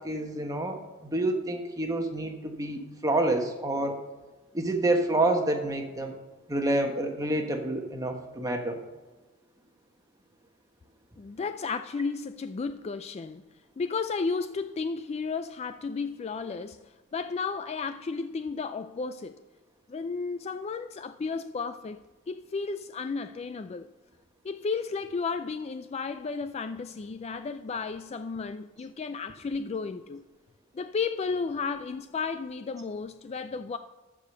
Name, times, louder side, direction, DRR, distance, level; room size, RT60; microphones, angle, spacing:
voice 1, 0.0-4.0 4.5-6.2 6.5-8.8, right 1 dB, 15° right, 1.2 m, -28 dB
voice 2, 11.2-13.4 13.8-19.4 19.9-22.0 22.3-23.9 24.4-30.3 30.7-33.8, left 4 dB, 30° left, 0.3 m, -33 dB
13.0 x 5.0 x 6.7 m
head